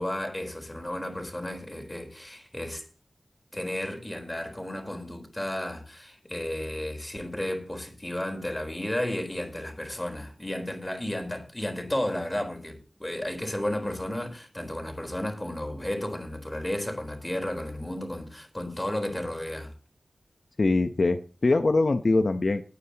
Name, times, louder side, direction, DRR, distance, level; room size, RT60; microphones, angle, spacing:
voice 1, 0.0-2.8 3.5-19.7, left 1 dB, 15° left, 4.0 m, -33 dB
voice 2, 20.6-22.6, left 3 dB, 60° left, 0.8 m, -23 dB
20.0 x 9.2 x 2.9 m
wide cardioid pair, 80°, 0 cm